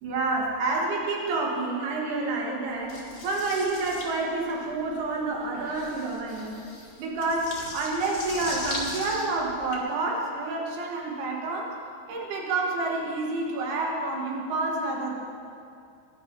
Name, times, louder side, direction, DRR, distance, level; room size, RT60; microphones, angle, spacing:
voice 1, 0.0-6.6 7.0-11.8 12.1-15.1, right 3 dB, 90° right, -2 dB, 3.5 m, -29 dB
sound 1, 2.9-9.8, left 3 dB, 50° left, 2.8 m, -39 dB
20.5 x 12.0 x 2.8 m, 2.4 s
omnidirectional pair, 4.5 m